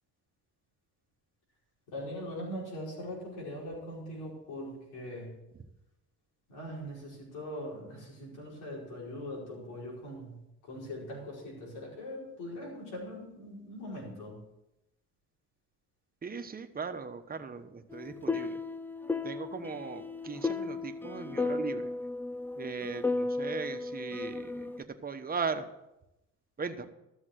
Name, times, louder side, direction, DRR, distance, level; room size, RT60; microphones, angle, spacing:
voice 1, 1.9-5.3 6.5-14.4, left 1 dB, 90° left, -3 dB, 5.2 m, -41 dB
voice 2, 16.2-18.6 19.2-21.9 22.6-25.7 26.6-26.9, right 5 dB, 30° right, 7 dB, 1.1 m, -38 dB
sound 1, 17.9-24.8, left 3 dB, 5° left, 0.5 m, -35 dB
13.5 x 7.2 x 6.5 m, 0.89 s
cardioid pair, 90°, 30 cm